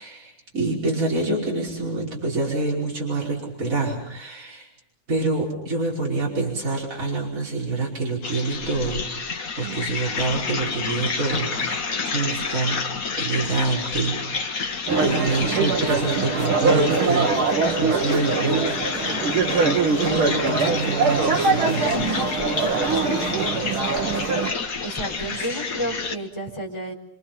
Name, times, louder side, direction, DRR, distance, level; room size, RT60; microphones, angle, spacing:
voice 1, 0.0-4.7 5.1-9.0 9.6-12.8 13.2-14.2 14.6-17.3 17.7-18.8 19.8-22.2 25.3-25.5, right 3 dB, 35° right, -2 dB, 5.7 m, -27 dB
sound 1, 8.2-26.2, left 4 dB, 45° left, 1.9 m, -29 dB
voice 2, 9.6-9.9 20.0-20.2 23.0-23.6 24.8-26.9, equal, 10° left, 0 dB, 4.2 m, -32 dB
sound 2, 14.9-24.5, right 4 dB, 70° right, 2.3 m, -22 dB
27.5 x 26.0 x 5.9 m, 0.76 s
omnidirectional pair, 2.4 m